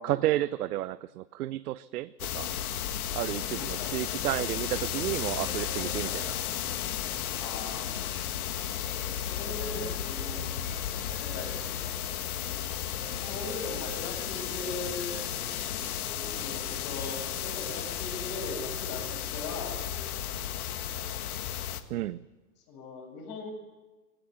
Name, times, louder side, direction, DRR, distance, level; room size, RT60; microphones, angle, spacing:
voice 1, 0.0-2.5 3.1-6.4 21.9-22.2, right 14 dB, 65° right, 15 dB, 0.7 m, -31 dB
sound 1, 2.2-21.8, left 10 dB, 60° left, 1.8 m, -34 dB
voice 2, 3.4-4.0 5.9-6.2 7.3-7.9 9.3-10.7 11.2-11.5 13.3-15.1 16.2-19.8 22.7-23.5, left 3 dB, 40° left, 3 dB, 7.6 m, -40 dB
sound 2, 3.9-20.5, right 3 dB, 5° right, 2.1 m, -50 dB
20.0 x 17.0 x 9.4 m, 1.2 s
hypercardioid pair, 135°, 49 cm